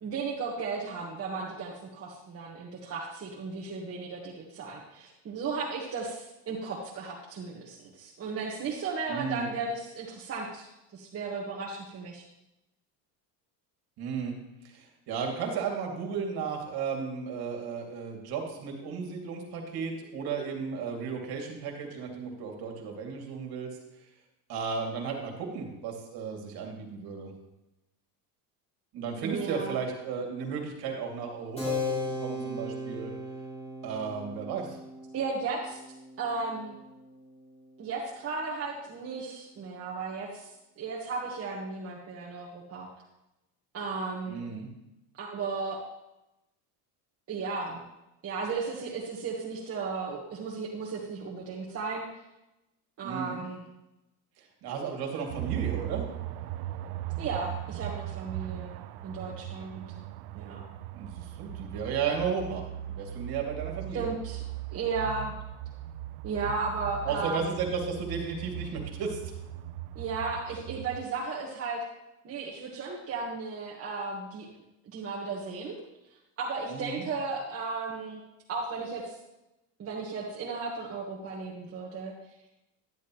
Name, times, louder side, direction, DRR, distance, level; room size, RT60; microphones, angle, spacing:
voice 1, 0.0-10.7 10.9-12.2 29.2-29.7 35.1-35.8 36.2-36.8 37.8-40.5 40.8-42.9 43.7-44.4 45.2-45.8 47.3-47.8 48.2-52.0 53.0-53.6 57.2-58.7 59.0-59.8 60.3-60.6 63.9-64.4 64.7-65.3 66.2-67.5 69.9-71.8 72.2-74.5 74.9-75.8 76.4-78.2 78.5-79.2 79.8-82.1, right 4 dB, 30° right, -3 dB, 1.4 m, -35 dB
voice 2, 9.1-9.5 14.0-14.4 14.6-23.7 24.5-27.3 28.9-33.1 33.8-34.8 44.3-44.7 53.0-53.4 54.4-56.0 60.9-64.1 67.0-69.2 76.7-77.0, right 6 dB, 50° right, 2 dB, 2.4 m, -34 dB
Keyboard (musical), 31.6-37.7, left 2 dB, 15° left, 3.5 m, -37 dB
sound 1, 55.3-71.0, right 14 dB, 80° right, 0.7 m, -38 dB
10.5 x 10.5 x 3.0 m, 0.92 s
cardioid pair, 130°, 46 cm